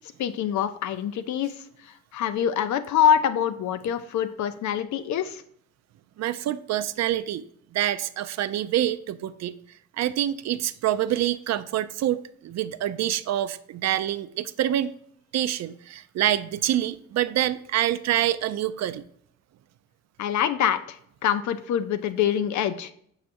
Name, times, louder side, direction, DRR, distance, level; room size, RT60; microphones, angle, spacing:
voice 1, 0.2-5.4 20.2-22.9, left 9 dB, 70° left, 11 dB, 0.6 m, -25 dB
voice 2, 6.2-7.4 7.7-9.6 10.0-14.9 15.3-19.0, right 12 dB, 60° right, 13 dB, 0.5 m, -26 dB
6.4 x 5.8 x 2.6 m, 0.65 s
cardioid pair, 90°, 30 cm